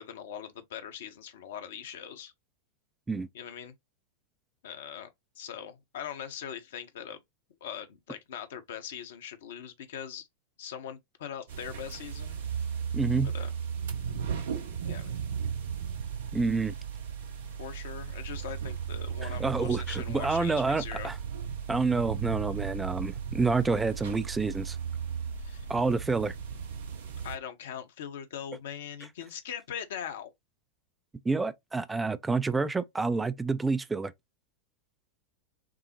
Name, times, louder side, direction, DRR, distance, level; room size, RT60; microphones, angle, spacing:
voice 1, 0.0-2.3 3.3-3.7 4.6-7.2 7.6-10.3 10.6-12.4 13.2-13.5 14.8-15.2 17.6-21.1 25.4-25.7 27.2-30.3, left 8 dB, 60° left, 0.8 m, -41 dB
sound 1, 11.5-27.4, right 7 dB, 60° right, 0.7 m, -35 dB
voice 2, 12.9-13.3 16.3-16.7 19.2-21.1 21.7-24.8 25.7-26.3 31.3-34.1, right 4 dB, 10° right, 0.4 m, -28 dB
6.0 x 2.0 x 2.7 m
figure-of-eight pair, 90°, 0 cm